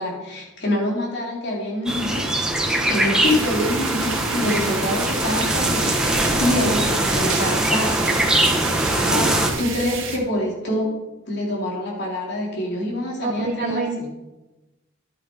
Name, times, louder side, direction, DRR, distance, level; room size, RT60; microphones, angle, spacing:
voice 1, 0.0-8.1 9.1-10.9 11.3-14.1, left 1 dB, 60° left, -2 dB, 3.4 m, -26 dB
sound 1, 1.9-9.5, right 1 dB, 5° right, 1.4 m, -22 dB
sound 2, 3.2-10.2, right 6 dB, 80° right, 1.6 m, -31 dB
voice 2, 13.2-14.1, right 3 dB, 45° right, 3 dB, 0.8 m, -27 dB
11.0 x 9.7 x 4.6 m, 1.0 s
head